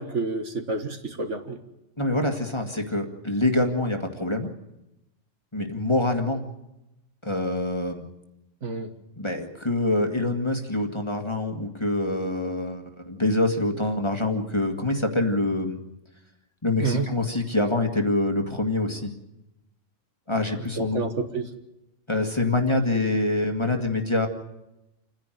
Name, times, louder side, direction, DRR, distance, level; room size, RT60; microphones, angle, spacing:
voice 1, 0.0-1.6 8.6-8.9 16.8-17.1 20.6-21.5, right 3 dB, 65° right, 6 dB, 2.0 m, -29 dB
voice 2, 2.0-4.5 5.5-6.5 7.2-8.0 9.2-15.8 16.6-19.1 20.3-21.1 22.1-24.3, left 2 dB, 20° left, 4 dB, 1.9 m, -25 dB
28.5 x 10.5 x 9.1 m, 0.91 s
omnidirectional pair, 1.4 m